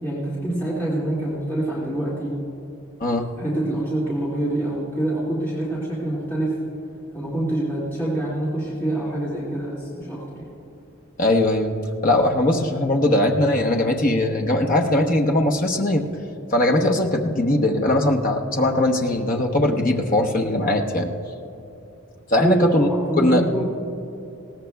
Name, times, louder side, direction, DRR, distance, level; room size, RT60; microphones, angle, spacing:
voice 1, 0.0-2.3 3.4-6.6 7.1-10.4 22.4-23.6, right 1 dB, 10° left, -9 dB, 2.2 m, -26 dB
voice 2, 11.2-11.7 12.0-16.1 16.5-21.1 22.3-22.9 23.2-23.4, left 1 dB, 40° left, 2 dB, 1.0 m, -20 dB
20.0 x 17.5 x 2.3 m, 2.9 s
head